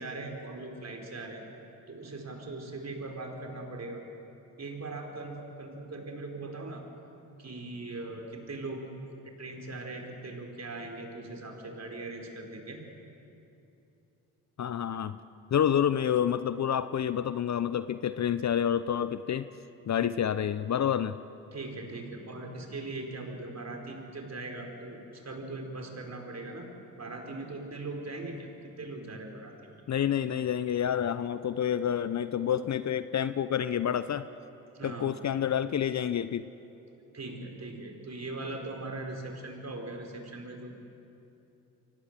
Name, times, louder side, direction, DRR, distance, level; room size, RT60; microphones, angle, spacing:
voice 1, 0.0-1.4 1.9-4.0 4.6-6.8 7.4-12.8 21.5-28.5 28.8-29.7 34.7-35.1 37.1-40.8, right 2 dB, 40° right, 2 dB, 4.8 m, -40 dB
voice 2, 14.6-15.2 15.5-19.5 19.9-21.2 29.9-34.3 34.8-36.5, left 9 dB, 40° left, 14 dB, 0.8 m, -28 dB
24.0 x 18.5 x 7.6 m, 2.8 s
hypercardioid pair, 50°, 41 cm